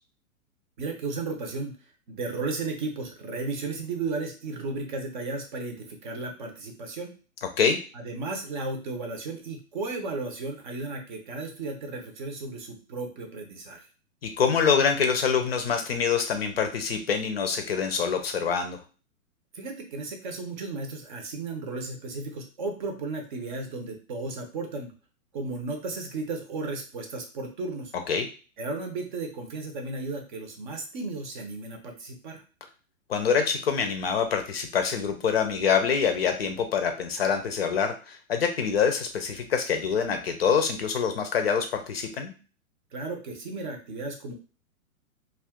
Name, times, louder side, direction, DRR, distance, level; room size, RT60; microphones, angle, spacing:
voice 1, 0.8-1.7 2.1-7.1 7.9-13.9 19.5-24.9 25.3-27.9 28.6-32.4 42.9-44.3, right 3 dB, 35° right, 3 dB, 0.7 m, -34 dB
voice 2, 14.2-18.8 28.1-28.3 33.1-42.3, left 6 dB, 45° left, 6 dB, 0.5 m, -25 dB
2.4 x 2.4 x 3.4 m, 0.36 s
figure-of-eight pair, 115°, 43 cm